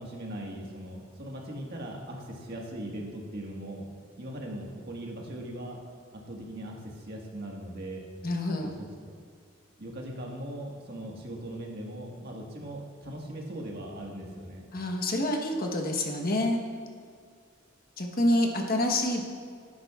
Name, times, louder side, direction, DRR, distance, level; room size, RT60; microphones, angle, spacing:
voice 1, 0.0-3.8 4.2-5.8 6.1-8.0 8.6-9.2 9.8-14.7, right 1 dB, 55° right, -1 dB, 1.7 m, -39 dB
voice 2, 8.2-8.7 14.7-16.6 18.0-19.2, left 1 dB, 45° left, 2 dB, 1.2 m, -27 dB
17.0 x 9.5 x 2.4 m, 2.1 s
head